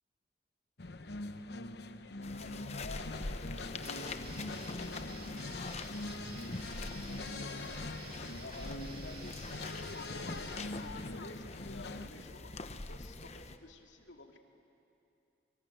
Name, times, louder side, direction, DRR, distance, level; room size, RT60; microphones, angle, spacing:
sound 1, 0.8-12.1, left 2 dB, 65° left, 0.9 m, -43 dB
sound 2, 2.2-13.6, left 3 dB, 35° left, 0.9 m, -45 dB
voice 1, 2.3-6.1 6.5-14.4, left 2 dB, 90° left, 3 dB, 2.5 m, -52 dB
sound 3, 3.8-10.7, right 4 dB, 50° right, 2.4 m, -52 dB
30.0 x 24.0 x 8.0 m, 2.7 s
head